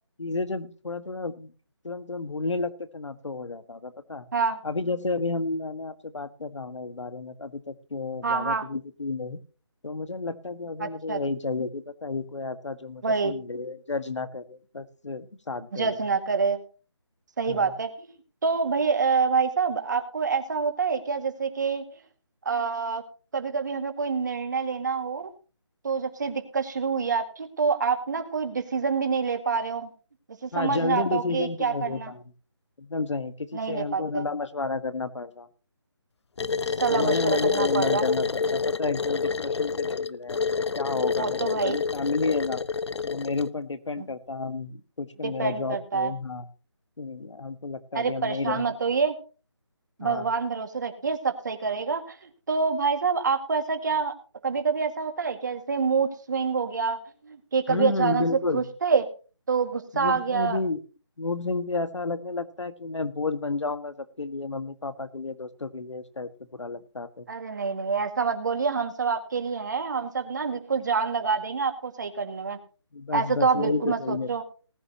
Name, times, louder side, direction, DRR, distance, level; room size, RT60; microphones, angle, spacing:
voice 1, 0.2-1.5 1.8-4.3 4.6-9.4 9.8-16.0 17.5-17.7 30.5-32.2 32.8-35.5 36.9-42.6 43.0-46.5 47.0-48.7 50.0-50.3 57.7-58.7 59.9-60.8 61.2-67.3 72.9-74.3, left 3 dB, 85° left, 10 dB, 1.6 m, -31 dB
voice 2, 8.2-8.6 10.8-11.2 13.0-13.4 15.7-16.6 17.4-18.1 18.4-21.8 22.5-23.0 23.3-25.3 25.8-29.9 30.4-32.1 33.5-34.2 36.8-38.0 41.2-41.8 44.0-44.1 45.2-46.1 47.9-49.2 50.0-54.2 54.4-57.0 57.2-58.3 58.5-59.0 59.5-60.6 67.3-72.6 73.1-74.4, right 5 dB, 40° right, 7 dB, 2.0 m, -26 dB
sound 1, 36.4-43.5, left 5 dB, 70° left, 0.5 m, -28 dB
19.0 x 10.5 x 2.9 m, 0.35 s
figure-of-eight pair, 170°, 15 cm